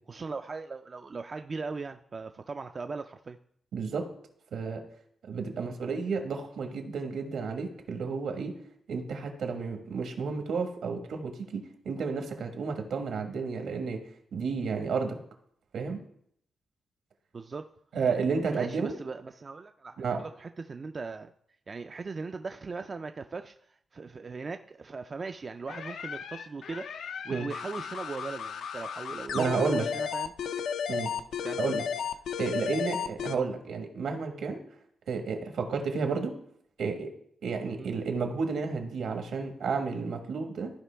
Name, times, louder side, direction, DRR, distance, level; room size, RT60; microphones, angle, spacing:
voice 1, 0.1-3.4 5.5-5.7 17.3-17.7 18.4-21.3 21.7-30.3 31.4-31.6 33.2-33.4 37.8-37.9, right 4 dB, 35° right, 7 dB, 0.3 m, -39 dB
voice 2, 3.7-4.0 4.5-4.8 5.3-8.5 8.9-14.0 14.3-15.2 15.7-16.0 17.9-18.9 20.0-20.2 27.3-27.5 29.3-29.8 30.9-31.1 31.6-31.8 32.4-34.6 35.1-36.3 36.8-37.1 37.4-40.7, right 5 dB, 75° right, 4 dB, 1.5 m, -31 dB
sound 1, 25.7-33.4, left 7 dB, 80° left, 0.5 m, -34 dB
14.0 x 5.0 x 3.4 m, 0.68 s
wide cardioid pair, 140°, 0 cm